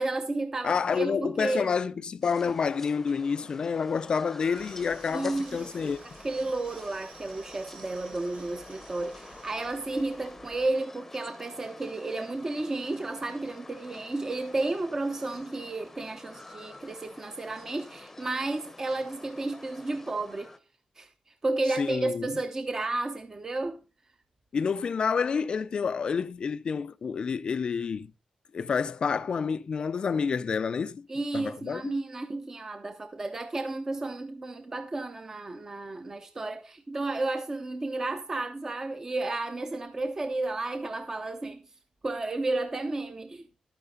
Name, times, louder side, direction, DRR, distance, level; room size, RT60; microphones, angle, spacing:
voice 1, 0.0-1.7 5.1-5.9 6.2-20.5 21.0-23.8 31.1-41.6 42.0-43.5, right 2 dB, 25° right, 0.8 m, -32 dB
voice 2, 0.6-6.0 21.8-22.3 24.5-28.1 28.5-31.1 31.3-32.0, left 6 dB, 45° left, 0.5 m, -29 dB
sound 1, 2.2-20.6, left 2 dB, 15° left, 0.9 m, -48 dB
sound 2, 4.5-10.7, right 5 dB, 70° right, 2.7 m, -53 dB
12.0 x 9.6 x 3.8 m
wide cardioid pair, 180°, 2 cm